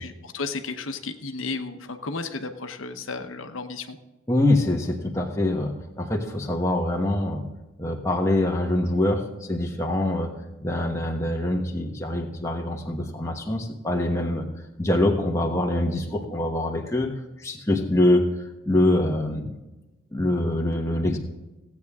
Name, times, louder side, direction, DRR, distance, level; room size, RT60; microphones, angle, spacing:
voice 1, 0.0-4.0, left 3 dB, 90° left, 6 dB, 0.9 m, -33 dB
voice 2, 4.3-7.4 7.8-10.3 10.6-14.5 14.8-17.1 17.4-18.3 18.6-19.5 20.1-21.2, left 1 dB, 15° left, 0 dB, 1.2 m, -24 dB
16.5 x 8.4 x 3.6 m, 1.0 s
head